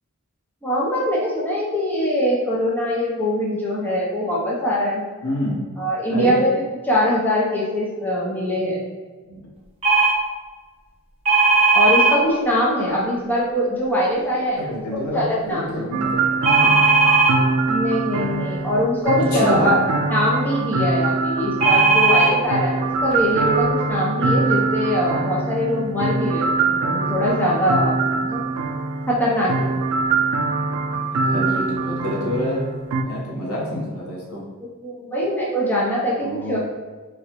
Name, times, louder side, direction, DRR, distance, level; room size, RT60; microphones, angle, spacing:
voice 1, 0.6-5.0 5.8-6.5 6.8-8.8 11.7-14.7 15.1-15.7 17.7-19.8 20.1-27.9 28.2-28.4 29.1-29.8 34.8-36.6, left 1 dB, 10° left, -6 dB, 0.6 m, -22 dB
voice 2, 5.2-5.6 6.1-6.4 9.3-9.4 14.6-16.9 19.2-19.8 31.2-34.4 36.2-36.6, left 1 dB, 85° left, -4 dB, 0.9 m, -27 dB
sound 1, 9.8-10.1 11.2-12.1 16.4-17.3 21.6-22.3 23.1-23.2 23.4-23.6, right 4 dB, 25° right, 0.8 m, -16 dB
sound 2, 15.9-33.0, right 3 dB, 70° right, 0.3 m, -23 dB
3.8 x 2.2 x 2.9 m, 1.4 s
head